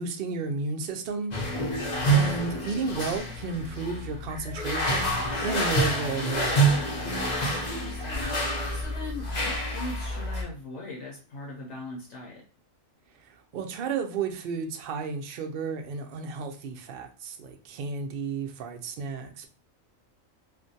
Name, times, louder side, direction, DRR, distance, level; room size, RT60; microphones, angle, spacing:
voice 1, 0.0-1.3 2.1-6.6 13.3-19.5, right 4 dB, 65° right, 4 dB, 0.5 m, -32 dB
sound 1, 1.3-10.4, right 2 dB, 45° left, 0.6 m, -27 dB
voice 2, 7.2-12.4, left 2 dB, 70° left, -1 dB, 0.9 m, -41 dB
2.5 x 2.2 x 2.6 m, 0.37 s
omnidirectional pair, 1.4 m